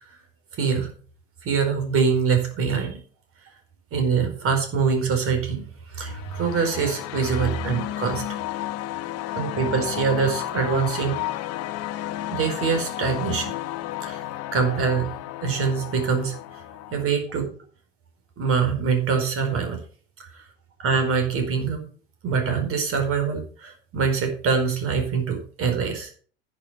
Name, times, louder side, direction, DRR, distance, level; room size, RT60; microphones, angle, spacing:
voice 1, 0.5-0.9 1.4-3.0 3.9-8.4 9.3-11.4 12.3-13.5 14.0-14.2 14.5-15.1 15.4-16.4 16.9-17.5 18.4-19.8 20.2-20.4 20.8-21.8 22.2-26.1, right 5 dB, 40° right, 5 dB, 4.7 m, -24 dB
sound 1, 6.0-17.0, left 14 dB, 50° left, 1.1 m, -32 dB
10.5 x 7.0 x 6.6 m, 0.43 s
hypercardioid pair, 70°, 33 cm